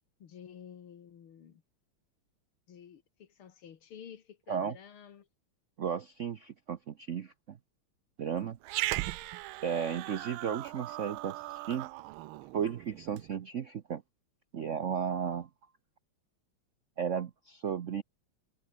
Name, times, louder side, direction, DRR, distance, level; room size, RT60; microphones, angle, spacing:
voice 1, 0.2-1.6 2.7-5.3, left 8 dB, 80° left, 2.6 m, -51 dB
voice 2, 5.8-7.6 8.2-8.6 9.6-11.9 12.5-14.0 14.5-15.5 17.0-18.0, right 7 dB, 60° right, 0.8 m, -34 dB
Growling, 8.6-13.3, right 18 dB, 80° right, 1.4 m, -38 dB
omnidirectional pair, 2.3 m